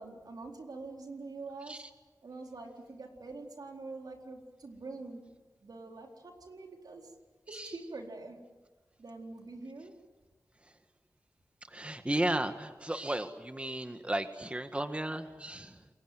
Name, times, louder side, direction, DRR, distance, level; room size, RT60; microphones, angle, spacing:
voice 1, 0.0-1.8 2.2-5.3 5.6-7.1 7.5-8.4 9.0-9.9, right 3 dB, 80° right, 2 dB, 4.1 m, -45 dB
voice 2, 11.7-15.9, right 1 dB, 20° right, 8 dB, 1.6 m, -34 dB
29.0 x 22.5 x 7.9 m, 1.2 s
wide cardioid pair, 65°, 7 cm